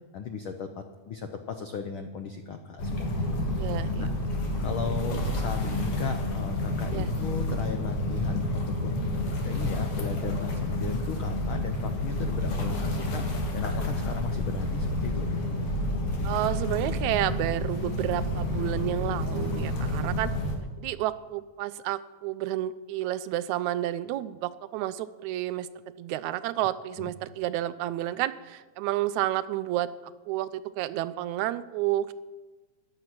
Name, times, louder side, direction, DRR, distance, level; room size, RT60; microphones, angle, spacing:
voice 1, 0.1-3.7 4.0-4.1 4.6-9.0 9.4-13.3 13.5-15.3 27.0-27.1, left 6 dB, 80° left, 6 dB, 1.1 m, -36 dB
sound 1, 2.8-20.6, left 1 dB, 55° left, 2.7 m, -29 dB
voice 2, 3.6-4.1 6.9-7.1 16.2-20.3 20.8-25.7 26.0-29.9 30.3-32.1, right 14 dB, 80° right, 14 dB, 1.9 m, -30 dB
14.5 x 10.5 x 6.0 m, 1.3 s
omnidirectional pair, 3.3 m